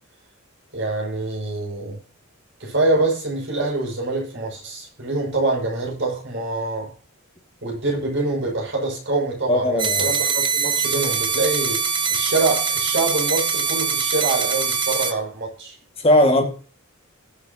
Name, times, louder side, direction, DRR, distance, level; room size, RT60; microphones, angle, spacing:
voice 1, 0.7-2.0 2.6-6.9 7.6-11.8 12.1-15.8, right 2 dB, 60° right, 6.3 m, -25 dB
voice 2, 9.5-10.1 16.0-16.4, left 1 dB, 30° left, 2.0 m, -17 dB
sound 1, 9.8-15.1, right 5 dB, 25° right, 1.1 m, -23 dB
21.0 x 7.3 x 2.9 m
head